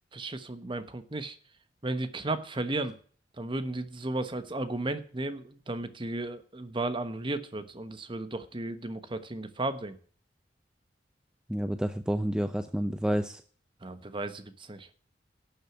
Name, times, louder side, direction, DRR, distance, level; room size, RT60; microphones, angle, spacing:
voice 1, 0.1-1.4 1.8-2.9 3.4-10.0 13.8-14.9, right 2 dB, 30° right, 11 dB, 1.2 m, -34 dB
voice 2, 11.5-13.4, equal, 5° right, 9 dB, 0.6 m, -29 dB
12.0 x 6.6 x 7.9 m, 0.43 s
head